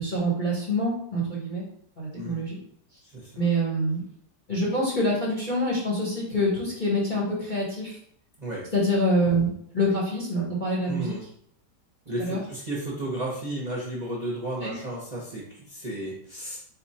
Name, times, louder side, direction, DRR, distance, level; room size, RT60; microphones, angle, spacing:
voice 1, 0.0-1.6 2.0-2.6 3.4-4.0 4.5-8.0 8.7-11.1 12.2-12.4 14.6-14.7, equal, 30° left, -6 dB, 1.0 m, -26 dB
voice 2, 3.0-3.4 8.4-8.7 10.9-11.2 12.1-16.6, right 1 dB, 35° right, -6 dB, 0.8 m, -33 dB
4.2 x 2.5 x 4.2 m, 0.66 s
omnidirectional pair, 1.9 m